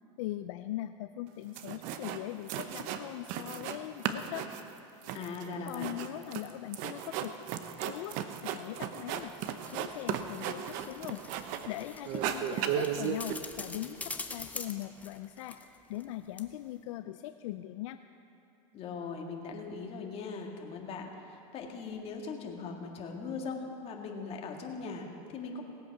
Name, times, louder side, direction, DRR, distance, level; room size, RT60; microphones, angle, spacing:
voice 1, 0.2-4.5 5.6-7.3 7.8-8.2 8.4-9.3 9.7-11.2 11.7-15.6 15.9-18.0, left 14 dB, 70° left, 10 dB, 0.4 m, -40 dB
sound 1, 1.3-1.4 1.5-2.2 2.5-3.8 4.0-11.7 12.0-13.3, right 9 dB, 55° right, 0.9 m, -35 dB
voice 2, 5.1-5.9 18.7-25.6, left 4 dB, 35° left, 1 dB, 1.8 m, -40 dB
sound 2, 9.1-16.1 16.4-16.5, left 3 dB, 10° left, 0.7 m, -45 dB
18.0 x 8.3 x 5.9 m, 2.6 s
supercardioid pair, 135°, 17 cm